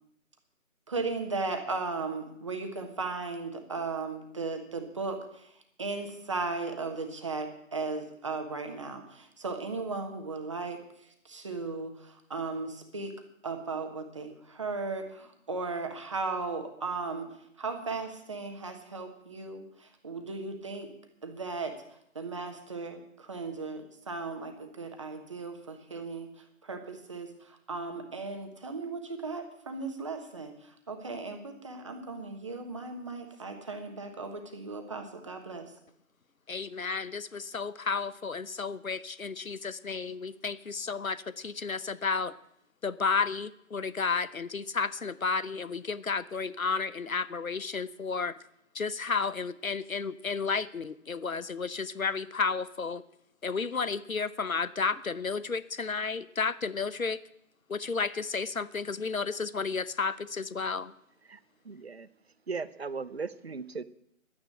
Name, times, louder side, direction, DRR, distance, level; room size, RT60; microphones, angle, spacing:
voice 1, 0.9-5.5 5.8-10.8 11.2-13.1 13.4-17.3 17.6-20.9 21.2-21.7 22.1-26.3 26.6-35.7, right 3 dB, 20° right, 6 dB, 1.3 m, -36 dB
voice 2, 36.5-42.3 42.8-48.3 48.7-53.0 53.4-57.2 57.7-60.9, left 5 dB, 90° left, 17 dB, 0.9 m, -32 dB
voice 3, 61.7-62.1 62.5-63.8, right 4 dB, 50° right, 16 dB, 0.7 m, -37 dB
11.5 x 9.7 x 8.9 m, 0.74 s
figure-of-eight pair, 160°, 40 cm